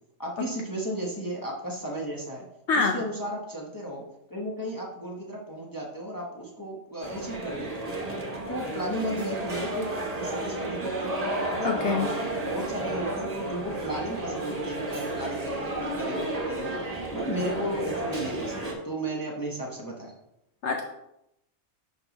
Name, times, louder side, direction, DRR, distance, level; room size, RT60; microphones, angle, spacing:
voice 1, 0.2-2.5 2.7-4.0 4.3-7.9 8.5-11.1 11.5-16.8 17.1-20.1, right 1 dB, 20° left, -2 dB, 0.9 m, -34 dB
voice 2, 2.7-3.0 11.6-12.1 20.6-20.8, left 4 dB, 65° left, 2 dB, 0.9 m, -25 dB
sound 1, 7.0-18.7, right 1 dB, 30° right, 1.1 m, -32 dB
11.5 x 3.8 x 3.0 m, 0.83 s
omnidirectional pair, 1.4 m